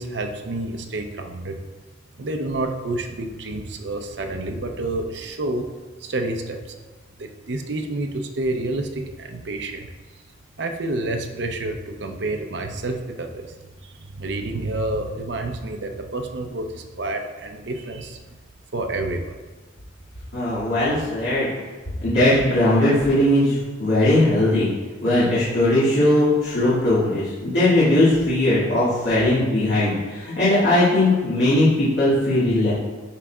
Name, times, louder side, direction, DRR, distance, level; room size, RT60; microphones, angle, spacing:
voice 1, 0.0-1.6 2.2-5.7 6.0-6.7 7.2-9.9 10.6-18.4 18.7-19.3, right 2 dB, 70° right, 5 dB, 0.7 m, -29 dB
voice 2, 20.3-21.5 22.0-24.7 25.0-32.7, left 1 dB, 70° left, -12 dB, 2.2 m, -19 dB
11.5 x 4.8 x 2.4 m, 1.3 s
head